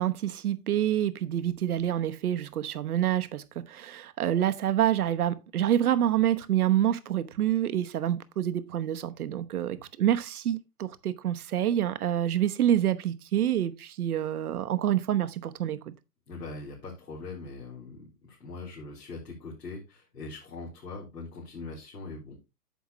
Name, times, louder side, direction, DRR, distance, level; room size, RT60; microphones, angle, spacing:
voice 1, 0.0-15.9, right 11 dB, 60° right, 1.1 m, -27 dB
voice 2, 16.3-22.4, left 3 dB, 75° left, 3.9 m, -42 dB
9.4 x 7.1 x 3.0 m
hypercardioid pair, 130°, 49 cm